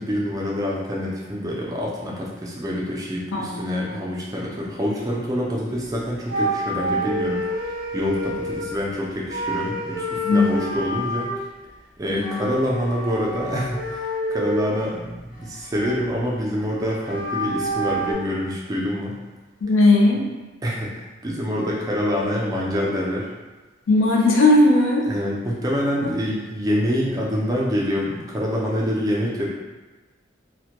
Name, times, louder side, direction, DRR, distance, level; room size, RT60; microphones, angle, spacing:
voice 1, 0.0-11.3 12.0-19.2 20.6-23.3 25.1-29.5, equal, 20° right, -4 dB, 0.3 m, -26 dB
voice 2, 3.3-4.0 10.2-10.8 12.1-12.5 19.6-20.3 23.9-25.1 26.0-26.1, left 2 dB, 85° left, -1 dB, 0.5 m, -18 dB
sound 1, 5.8-5.9 6.3-8.8 9.3-11.4 12.1-14.7 15.2-16.1 16.8-18.1, right 1 dB, 40° left, 0.6 m, -28 dB
2.1 x 2.1 x 2.8 m, 1.2 s
head